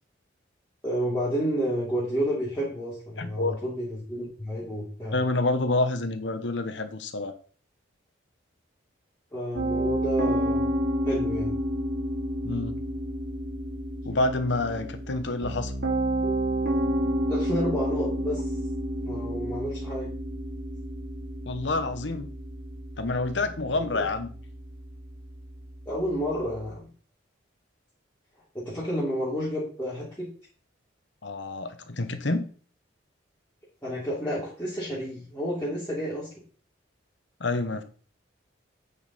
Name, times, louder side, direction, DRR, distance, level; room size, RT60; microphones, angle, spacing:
voice 1, 0.8-5.2 9.3-10.7 11.0-11.5 17.2-18.4 19.0-20.1 23.7-24.1 25.9-26.9 28.5-30.3 33.8-36.3, equal, 10° left, -11 dB, 3.0 m, -30 dB
voice 2, 3.2-3.6 5.1-7.3 12.4-12.8 14.0-15.7 21.5-22.3 23.0-24.3 31.2-32.5 37.4-37.8, left 2 dB, 70° left, 8 dB, 1.1 m, -28 dB
Piano, 9.5-26.7, right 1 dB, 60° right, 2.8 m, -30 dB
9.3 x 5.5 x 4.2 m, 0.41 s
head